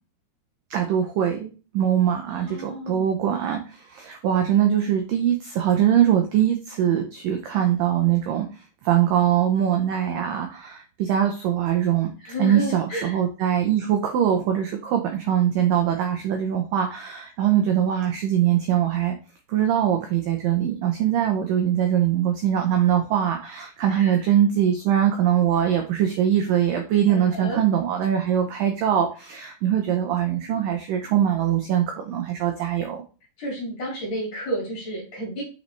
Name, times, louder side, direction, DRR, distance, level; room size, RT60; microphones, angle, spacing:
voice 1, 0.7-12.1 12.4-19.2 19.5-33.0, right 10 dB, 90° right, 4 dB, 1.9 m, -22 dB
voice 2, 2.2-3.1 12.2-13.2 23.9-24.2 27.1-27.6 33.4-35.4, equal, 45° left, -3 dB, 3.0 m, -31 dB
6.7 x 5.1 x 3.2 m, 0.34 s
omnidirectional pair, 5.0 m